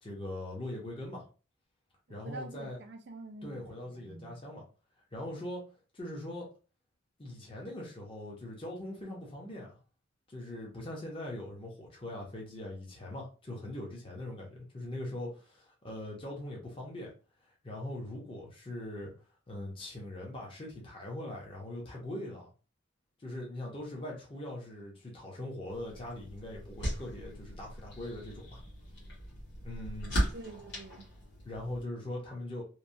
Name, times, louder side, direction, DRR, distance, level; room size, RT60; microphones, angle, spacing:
voice 1, 0.0-1.2 2.1-2.8 3.4-4.6 5.1-5.6 5.9-6.5 7.2-9.8 10.3-17.1 17.6-19.1 19.5-22.5 23.2-28.6 29.6-30.1 31.4-32.6, left 1 dB, 25° left, 0.7 m, -41 dB
voice 2, 2.2-4.4 30.3-31.1, right 2 dB, 55° right, 0.5 m, -46 dB
sound 1, 25.7-31.8, equal, 55° left, 1.4 m, -38 dB
3.0 x 2.1 x 2.6 m
head